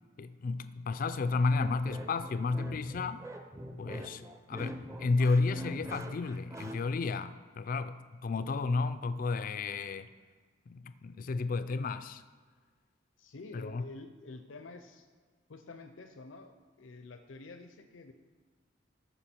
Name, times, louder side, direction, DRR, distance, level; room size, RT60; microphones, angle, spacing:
voice 1, 0.2-3.2 3.8-10.1 10.7-12.2 13.5-13.8, left 3 dB, 45° left, 0.4 m, -32 dB
sound 1, 1.6-6.8, right 1 dB, 15° right, 0.6 m, -44 dB
voice 2, 13.2-15.1 15.5-18.1, left 3 dB, 90° left, 0.6 m, -49 dB
14.0 x 5.9 x 4.4 m
head